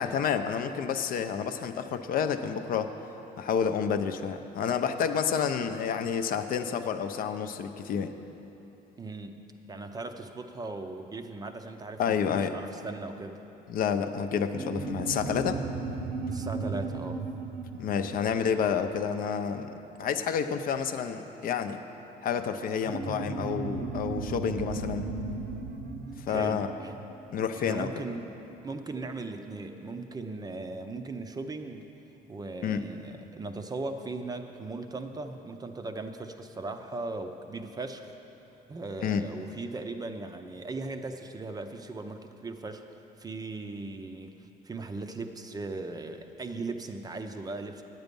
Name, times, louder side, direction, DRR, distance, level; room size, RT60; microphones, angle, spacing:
voice 1, 0.0-2.9 3.4-8.1 12.0-12.5 13.7-15.6 17.8-19.7 20.0-21.8 22.2-25.1 26.3-26.7 27.3-27.9 32.6-32.9 39.0-39.2, left 7 dB, 55° left, 8 dB, 0.5 m, -29 dB
voice 2, 9.0-13.4 16.3-17.2 26.3-26.9 27.6-28.3 28.6-31.9 32.3-38.1 38.7-47.8, right 3 dB, 25° right, 7 dB, 0.5 m, -38 dB
sound 1, 14.5-19.5 22.8-27.8, right 4 dB, 65° right, 0.7 m, -36 dB
9.0 x 8.1 x 5.3 m, 3.0 s
cardioid pair, 110°, 17 cm